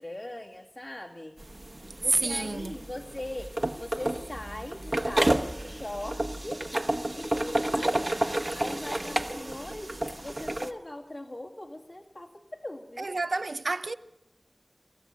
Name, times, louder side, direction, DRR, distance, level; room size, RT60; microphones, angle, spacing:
voice 1, 0.0-1.4 2.0-3.5 3.8-6.6 7.1-7.9 8.5-13.1, left 1 dB, 60° left, 2.4 m, -40 dB
sound 1, 1.4-10.7, right 1 dB, 40° right, 1.1 m, -31 dB
voice 2, 2.1-2.7 13.0-13.9, right 3 dB, 85° right, 0.6 m, -29 dB
27.0 x 15.0 x 6.6 m
wide cardioid pair, 45°, 0 cm